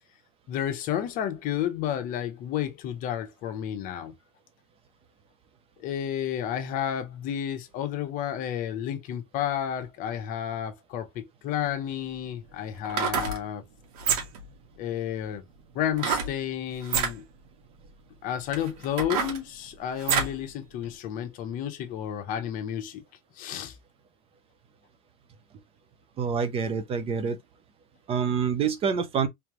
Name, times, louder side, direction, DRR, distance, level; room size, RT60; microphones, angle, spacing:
voice 1, 0.5-4.1 5.8-13.6 14.8-15.4 15.7-17.2 18.2-23.0 23.4-23.8, left 10 dB, 45° left, 0.9 m, -31 dB
sound 1, 11.6-11.7 12.8-13.4 13.9-14.5 16.0-16.3 16.8-17.1 17.9-18.0 18.5-20.4 20.8-20.9, right 6 dB, 75° right, 1.7 m, -28 dB
voice 2, 26.2-27.4 28.1-29.3, right 6 dB, 30° right, 0.7 m, -26 dB
3.7 x 3.3 x 3.1 m
supercardioid pair, 150°, 20 cm